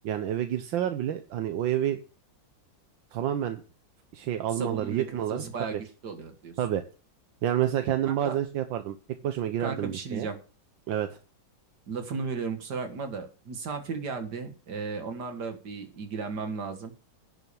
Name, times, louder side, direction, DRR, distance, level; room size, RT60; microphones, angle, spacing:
voice 1, 0.0-2.0 3.1-3.6 4.1-5.4 5.7-5.8 6.6-6.8 7.4-9.0 9.2-10.3 10.9-11.1, right 11 dB, 80° right, 8 dB, 1.6 m, -28 dB
voice 2, 4.5-6.5 8.1-8.4 9.6-10.4 11.9-16.9, right 5 dB, 60° right, 6 dB, 2.4 m, -35 dB
10.5 x 6.7 x 6.9 m, 0.36 s
omnidirectional pair, 2.1 m